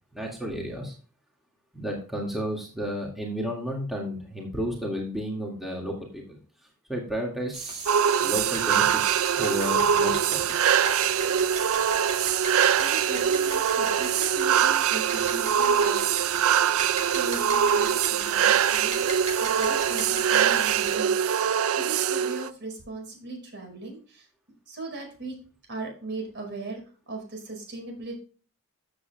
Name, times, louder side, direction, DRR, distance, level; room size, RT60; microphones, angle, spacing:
voice 1, 0.1-0.9 1.7-6.4 6.9-7.9 8.2-10.5, equal, ahead, -2 dB, 1.9 m, -32 dB
sound 1, 7.5-21.0, right 4 dB, 30° right, 2.1 m, -36 dB
sound 2, 7.9-22.5, right 8 dB, 70° right, 0.4 m, -23 dB
voice 2, 12.8-16.4 17.1-19.0 19.4-24.2 24.7-25.4 25.7-28.2, right 2 dB, 55° right, 2 dB, 5.0 m, -38 dB
14.0 x 7.8 x 2.2 m, 0.38 s
head